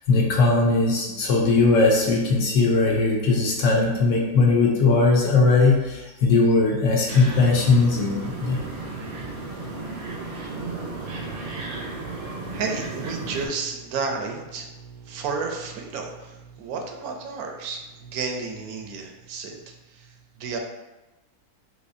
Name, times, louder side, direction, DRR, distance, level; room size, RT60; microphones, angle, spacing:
voice 1, 0.1-8.6, left 3 dB, 65° left, -1 dB, 1.0 m, -19 dB
sound 1, 7.1-13.5, right 3 dB, 60° right, 0.6 m, -34 dB
voice 2, 11.0-20.1 20.4-20.6, right 4 dB, 80° right, 3 dB, 1.1 m, -33 dB
4.1 x 2.8 x 2.6 m, 1.1 s
omnidirectional pair, 1.5 m